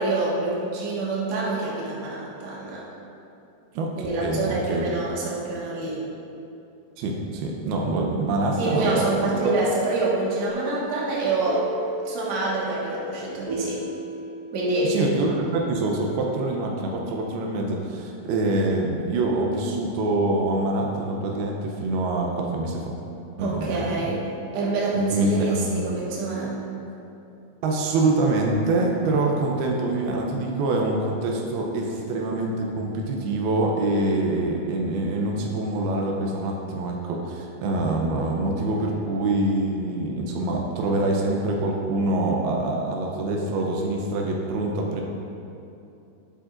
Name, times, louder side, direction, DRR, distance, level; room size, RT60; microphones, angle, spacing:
voice 1, 0.0-2.8 4.0-6.0 8.6-11.6 12.1-13.8 14.5-15.0 23.4-24.2 24.5-26.6, right 2 dB, 55° right, -6 dB, 2.4 m, -26 dB
voice 2, 3.7-4.9 7.0-9.6 14.8-22.9 23.4-24.0 24.9-25.8 27.6-45.0, right 2 dB, 85° right, 0 dB, 2.7 m, -25 dB
sound 1, 10.5-15.2, left 1 dB, 65° left, 0.9 m, -35 dB
11.0 x 8.1 x 2.5 m, 2.7 s
omnidirectional pair, 4.3 m